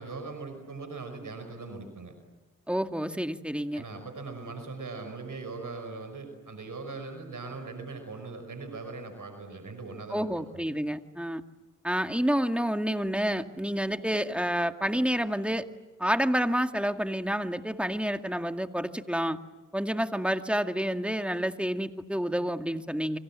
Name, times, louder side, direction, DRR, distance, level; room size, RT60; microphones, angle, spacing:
voice 1, 0.0-2.2 3.7-10.6, right 3 dB, 75° right, 7 dB, 5.6 m, -40 dB
voice 2, 2.7-3.8 10.1-11.4 11.8-15.7 16.0-19.4 19.7-23.2, equal, 5° right, 7 dB, 2.1 m, -29 dB
30.0 x 24.5 x 7.5 m, 1.2 s
cardioid pair, 40°, 32 cm